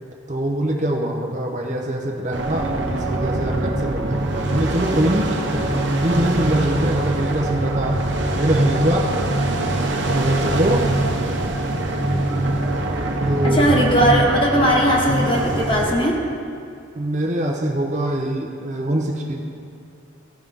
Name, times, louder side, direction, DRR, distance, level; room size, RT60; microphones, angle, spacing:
voice 1, 0.3-4.2 4.5-8.0 8.3-9.1 10.1-10.9 11.4-11.5 13.3-13.7 16.9-19.4, right 1 dB, 35° right, 1 dB, 0.7 m, -23 dB
sound 1, 2.3-15.9, right 2 dB, 65° right, 0.9 m, -23 dB
voice 2, 13.4-16.2, equal, 25° left, -2 dB, 1.2 m, -18 dB
15.0 x 5.5 x 3.6 m, 2.4 s
head